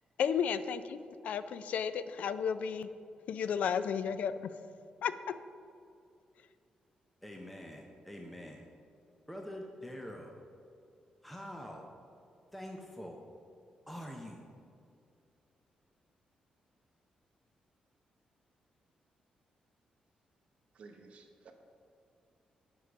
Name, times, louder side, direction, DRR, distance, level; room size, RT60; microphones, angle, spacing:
voice 1, 0.2-2.9 3.3-4.5 5.0-5.3, left 7 dB, 70° left, 13 dB, 0.4 m, -33 dB
voice 2, 7.2-8.7 9.3-10.3 11.2-11.9 12.5-13.2 13.9-14.5, equal, 5° left, 1 dB, 0.6 m, -45 dB
voice 3, 20.7-21.5, right 4 dB, 55° right, 4 dB, 0.9 m, -54 dB
8.2 x 4.7 x 6.2 m, 2.4 s
wide cardioid pair, 155°, 3 cm